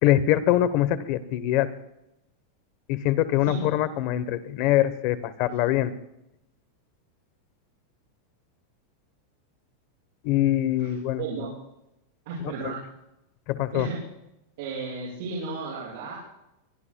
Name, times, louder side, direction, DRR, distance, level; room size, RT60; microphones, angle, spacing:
voice 1, 0.0-1.7 2.9-5.9 10.2-11.2 12.4-12.7 13.5-13.9, left 13 dB, 40° left, 14 dB, 1.0 m, -23 dB
voice 2, 11.2-11.5 12.2-12.8 13.7-14.0 14.6-16.2, right 4 dB, 50° right, -6 dB, 6.5 m, -33 dB
24.5 x 21.5 x 2.3 m, 0.87 s
supercardioid pair, 175°, 0 cm